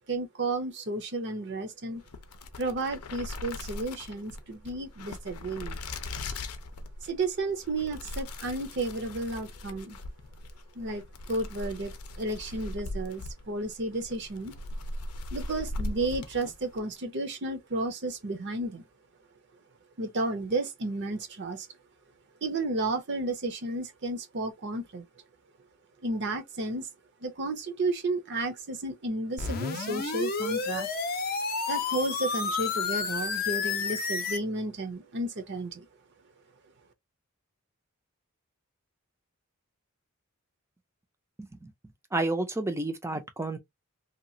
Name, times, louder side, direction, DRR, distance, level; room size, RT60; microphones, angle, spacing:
voice 1, 0.1-2.0 2.6-5.8 7.0-10.0 10.8-11.0 11.3-11.9 12.2-14.5 15.3-18.8 20.0-21.7 22.4-25.0 26.0-26.9 27.2-30.9 31.7-35.8, right 2 dB, 50° right, 0.7 m, -32 dB
sound 1, 2.0-16.9, left 2 dB, 85° left, 0.5 m, -39 dB
sound 2, 29.4-34.4, left 5 dB, 45° left, 0.6 m, -30 dB
voice 2, 41.4-41.7 42.1-43.6, right 2 dB, 10° right, 0.4 m, -30 dB
2.9 x 2.4 x 2.6 m
head